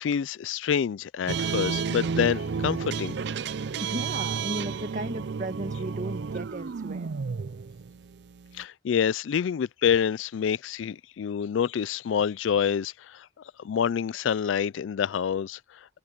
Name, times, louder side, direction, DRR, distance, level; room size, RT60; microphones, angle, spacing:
voice 1, 0.0-3.1 8.5-13.3 13.6-15.9, left 8 dB, 75° left, 0.3 m, -27 dB
sound 1, 1.3-8.6, right 5 dB, 60° right, 0.4 m, -31 dB
voice 2, 3.8-7.1, right 1 dB, 40° right, 1.5 m, -35 dB
head